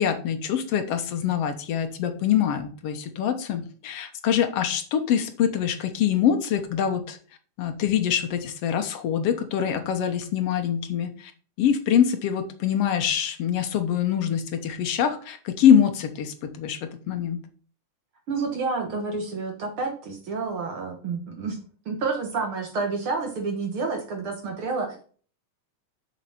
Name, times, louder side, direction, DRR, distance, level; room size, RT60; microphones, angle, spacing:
voice 1, 0.0-7.2 7.6-11.3 11.6-17.4, left 9 dB, 65° left, 7 dB, 1.6 m, -24 dB
voice 2, 18.3-21.6 21.9-25.0, right 4 dB, 55° right, 3 dB, 1.8 m, -29 dB
7.2 x 6.4 x 5.7 m, 0.43 s
omnidirectional pair, 3.5 m